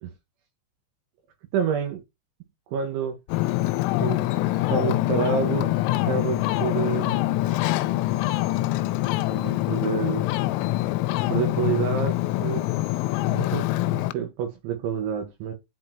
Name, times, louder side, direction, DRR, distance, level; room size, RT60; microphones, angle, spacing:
voice 1, 1.5-2.0 2.7-3.2 4.0-4.3 4.5-5.7 6.0-7.1 9.3-10.3 11.3-12.6 13.3-15.5, right 7 dB, 75° right, 3.5 m, -28 dB
Ocean, 3.3-14.1, left 17 dB, 90° left, 3.2 m, -25 dB
10.5 x 4.3 x 2.9 m
omnidirectional pair, 5.7 m